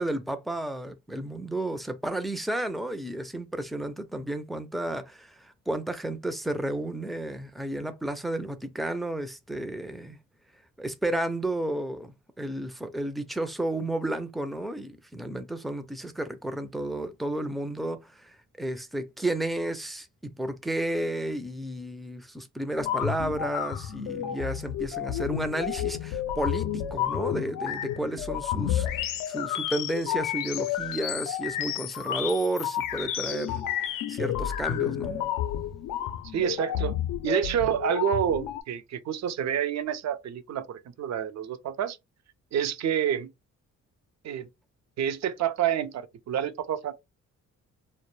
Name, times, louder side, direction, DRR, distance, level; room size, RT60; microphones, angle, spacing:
voice 1, 0.0-10.2 10.8-35.3, right 1 dB, ahead, 0.4 m, -32 dB
sound 1, 22.8-38.6, left 11 dB, 80° left, 0.5 m, -31 dB
voice 2, 36.3-36.9 37.2-42.0 42.5-43.3 44.2-44.5 45.0-46.9, right 9 dB, 55° right, 0.5 m, -28 dB
2.1 x 2.1 x 3.0 m
cardioid pair, 70°, 32 cm